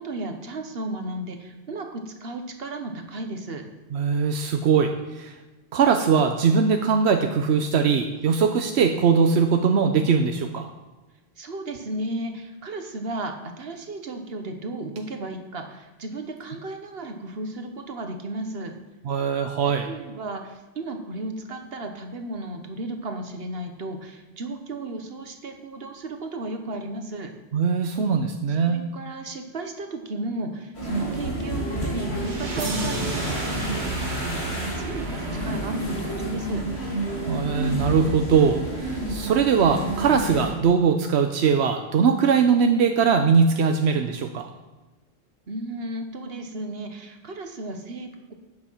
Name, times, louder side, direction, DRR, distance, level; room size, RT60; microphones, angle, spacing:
voice 1, 0.0-3.6 11.4-18.7 19.7-27.3 28.7-33.2 34.8-36.6 45.5-48.3, right 2 dB, 65° right, 5 dB, 1.5 m, -34 dB
voice 2, 3.9-5.4 5.7-10.7 19.0-19.9 27.5-28.8 37.3-44.5, right 6 dB, 90° right, 5 dB, 1.1 m, -21 dB
sound 1, 30.7-40.5, right 1 dB, 85° left, 3.0 m, -29 dB
sound 2, 32.2-37.1, right 3 dB, 50° right, 1.3 m, -34 dB
11.0 x 8.7 x 5.7 m, 1.2 s
omnidirectional pair, 1.1 m